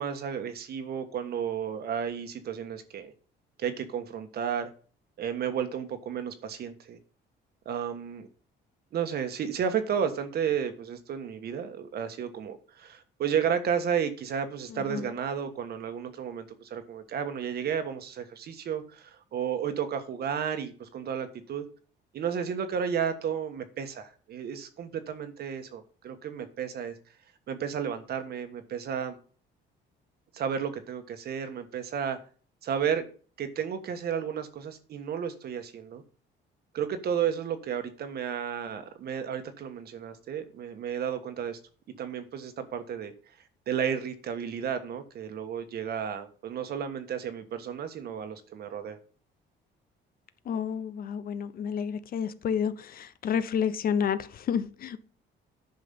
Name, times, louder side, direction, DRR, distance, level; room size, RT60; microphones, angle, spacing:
voice 1, 0.0-3.1 3.6-4.7 5.2-7.0 7.6-8.3 8.9-21.7 22.1-26.9 27.5-29.2 30.3-32.2 32.6-33.1 33.4-36.0 36.7-41.6 42.0-43.1 43.7-49.0, right 8 dB, 55° right, 1.5 m, -32 dB
voice 2, 14.7-15.1 50.5-55.0, left 7 dB, 50° left, 0.8 m, -30 dB
10.5 x 6.1 x 5.5 m
cardioid pair, 155°, 20 cm